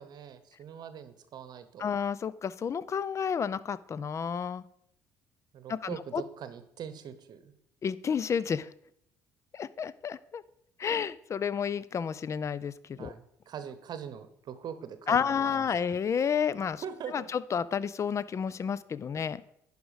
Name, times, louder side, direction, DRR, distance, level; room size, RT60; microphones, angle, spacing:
voice 1, 0.0-1.9 5.5-7.5 13.0-15.6 16.8-17.3 19.1-19.3, right 8 dB, 50° right, 12 dB, 0.9 m, -42 dB
voice 2, 1.8-4.6 5.7-6.2 7.8-8.7 9.5-10.4 10.8-13.1 15.1-16.8 17.1-19.4, left 7 dB, 30° left, 18 dB, 0.4 m, -31 dB
11.0 x 5.0 x 4.9 m, 0.74 s
hypercardioid pair, 55°, 9 cm